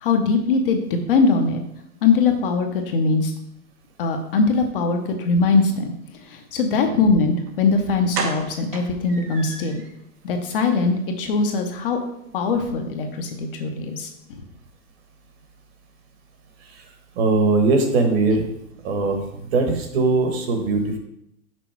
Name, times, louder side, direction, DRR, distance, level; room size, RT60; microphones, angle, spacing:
voice 1, 0.0-1.6 2.0-3.3 4.0-5.9 6.3-9.8 10.2-12.0 12.3-14.1 14.4-14.5, left 4 dB, 35° left, 4 dB, 0.8 m, -21 dB
sound 1, 7.5-7.6 8.1-9.9 10.3-10.4 10.7-10.9 11.1-11.2, right 5 dB, 80° right, 1.5 m, -32 dB
voice 2, 17.1-18.4 18.8-21.0, right 3 dB, 40° right, 4 dB, 1.3 m, -20 dB
6.2 x 5.0 x 4.5 m, 0.78 s
hypercardioid pair, 155°, 46 cm